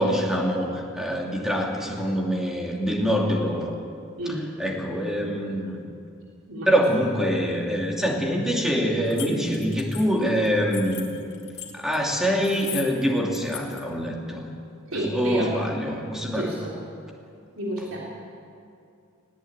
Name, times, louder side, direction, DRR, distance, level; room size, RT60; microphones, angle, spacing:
voice 1, 0.0-3.7 4.6-5.8 6.7-11.0 11.7-14.5 14.9-16.5, equal, ahead, -1 dB, 2.7 m, -25 dB
voice 2, 4.2-4.5 6.5-6.7 9.2-9.4 10.1-10.3 14.9-15.6 16.3-16.8 17.5-18.0, equal, 75° right, -4 dB, 3.5 m, -30 dB
sound 1, 9.1-12.0 12.4-13.0 13.3-13.9, left 11 dB, 55° left, 2.6 m, -38 dB
19.5 x 18.0 x 8.9 m, 2.4 s
head